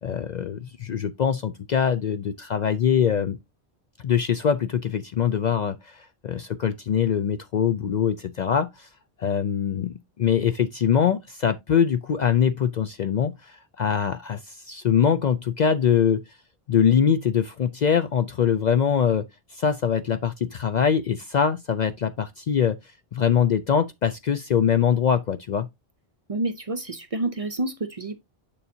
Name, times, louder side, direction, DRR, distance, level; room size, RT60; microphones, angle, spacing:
voice 1, 0.0-3.4 4.0-8.9 9.2-16.2 16.7-22.8 23.1-25.7, left 8 dB, 55° left, 0.5 m, -23 dB
voice 2, 26.3-28.2, right 2 dB, 40° right, 0.6 m, -28 dB
7.1 x 6.8 x 2.7 m
omnidirectional pair, 1.1 m